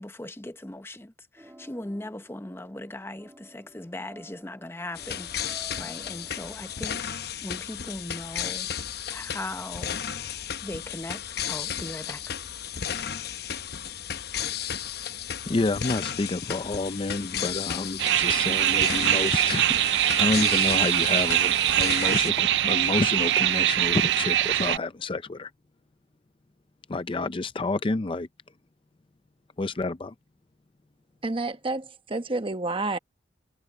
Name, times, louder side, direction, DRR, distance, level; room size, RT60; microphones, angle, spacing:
voice 1, 0.0-8.7 9.0-10.0 10.6-12.3, left 1 dB, 15° left, 0.9 m, -39 dB
sound 1, 1.4-6.8, right 1 dB, 10° right, 2.7 m, -52 dB
sound 2, 4.9-22.3, left 8 dB, 60° left, 0.9 m, -34 dB
voice 2, 15.5-25.5 26.9-28.3 29.6-30.1, left 2 dB, 30° left, 0.5 m, -29 dB
sound 3, 18.0-24.8, right 12 dB, 70° right, 0.3 m, -23 dB
voice 3, 31.2-33.0, right 2 dB, 30° right, 1.0 m, -29 dB
head